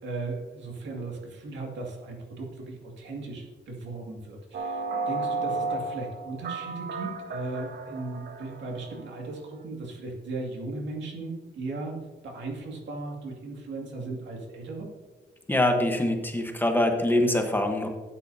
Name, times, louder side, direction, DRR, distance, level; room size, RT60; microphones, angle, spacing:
voice 1, 0.0-12.0 12.2-14.9, right 3 dB, 80° right, 0 dB, 2.3 m, -37 dB
sound 1, 4.5-9.0, right 3 dB, 60° right, 1.0 m, -33 dB
voice 2, 15.5-17.9, left 1 dB, 10° left, 3 dB, 1.2 m, -24 dB
12.5 x 8.8 x 2.8 m, 1.3 s
cardioid pair, 120°, 19 cm